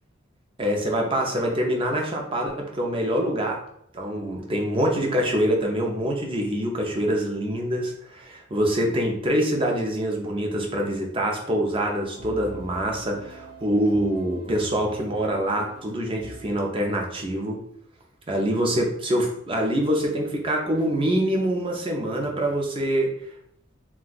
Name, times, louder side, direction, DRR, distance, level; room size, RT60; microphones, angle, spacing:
voice 1, 0.6-3.6 3.9-17.6 18.3-23.1, right 1 dB, 25° right, 1 dB, 0.6 m, -25 dB
sound 1, 11.7-16.7, equal, 75° right, 0.7 m, -44 dB
2.6 x 2.3 x 3.9 m, 0.71 s
head